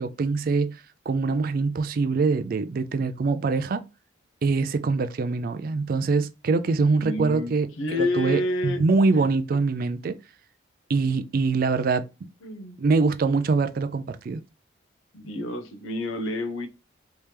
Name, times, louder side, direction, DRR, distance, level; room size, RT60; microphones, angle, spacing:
voice 1, 0.0-3.9 4.4-10.2 10.9-12.1 12.8-14.4, right 4 dB, 45° right, 0.3 m, -24 dB
voice 2, 7.0-8.9 12.4-12.8 15.1-16.7, left 2 dB, 85° left, 0.7 m, -29 dB
3.3 x 2.9 x 3.2 m
head